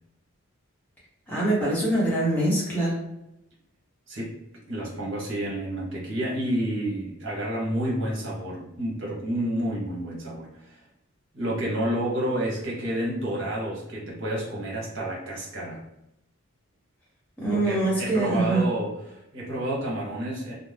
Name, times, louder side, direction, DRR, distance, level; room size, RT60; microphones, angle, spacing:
voice 1, 1.3-3.0 17.4-18.6, right 2 dB, 10° left, -6 dB, 0.9 m, -24 dB
voice 2, 4.7-10.8 11.3-15.8 17.5-20.6, right 1 dB, 60° right, -4 dB, 1.1 m, -30 dB
2.7 x 2.1 x 3.2 m, 0.87 s
head